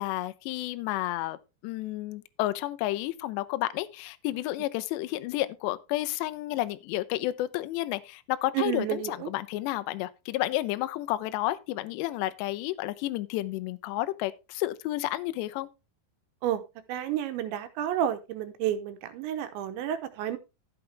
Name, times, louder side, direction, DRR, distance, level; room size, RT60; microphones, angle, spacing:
voice 1, 0.0-1.4 1.6-15.7, left 16 dB, 85° left, 2.5 m, -31 dB
voice 2, 8.5-9.3 16.4-16.6 16.9-20.4, right 11 dB, 75° right, 3.0 m, -30 dB
12.5 x 8.0 x 3.3 m
omnidirectional pair, 5.7 m